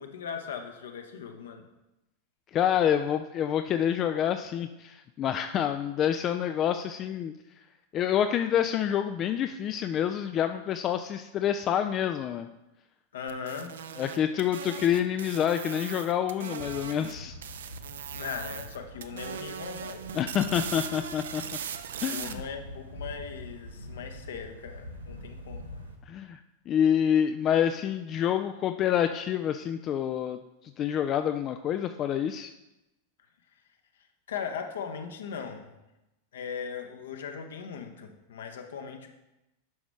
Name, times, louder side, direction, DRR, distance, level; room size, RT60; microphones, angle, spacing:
voice 1, 0.0-1.7 13.1-13.7 18.1-20.2 22.1-25.6 34.3-35.7 36.3-39.1, left 6 dB, 60° left, 5 dB, 1.0 m, -39 dB
voice 2, 2.5-7.3 7.9-12.5 14.0-17.3 20.1-21.4 22.0-22.4 26.1-32.5, left 9 dB, 30° left, 8 dB, 0.4 m, -27 dB
sound 1, 13.3-17.1 17.4-18.8 19.0-22.3, right 8 dB, 60° right, 0.5 m, -39 dB
sound 2, 16.6-26.0, left 1 dB, 90° right, 1.4 m, -45 dB
10.5 x 6.1 x 3.2 m, 0.95 s
figure-of-eight pair, 90°, 0 cm